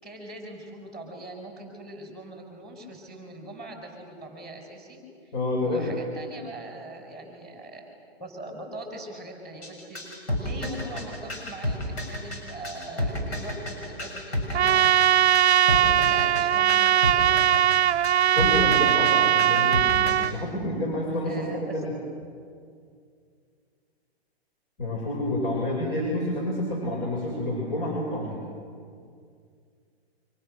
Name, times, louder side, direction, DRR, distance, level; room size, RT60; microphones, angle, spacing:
voice 1, 0.0-5.3 5.6-7.9 8.2-15.1 15.7-17.5 17.8-17.9 21.2-21.8, right 1 dB, ahead, 1 dB, 5.0 m, -41 dB
voice 2, 5.3-5.9 18.3-21.9 24.8-28.4, left 1 dB, 45° left, -1 dB, 6.7 m, -29 dB
sound 1, 9.6-20.3, left 1 dB, 75° left, 6.9 m, -31 dB
Trumpet, 14.5-20.3, right 10 dB, 80° right, 0.6 m, -20 dB
29.0 x 25.0 x 6.6 m, 2.2 s
hypercardioid pair, 140°, 32 cm